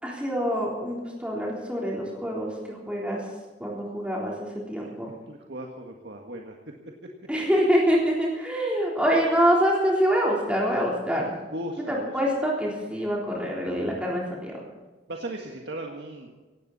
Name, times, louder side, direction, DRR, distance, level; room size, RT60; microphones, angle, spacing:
voice 1, 0.0-3.2 3.6-5.1 7.3-11.3 11.9-14.6, equal, 5° right, -3 dB, 3.8 m, -25 dB
voice 2, 5.3-6.6 11.5-12.1 15.1-16.5, right 1 dB, 70° right, 1 dB, 1.8 m, -37 dB
18.0 x 17.0 x 4.2 m, 1.3 s
head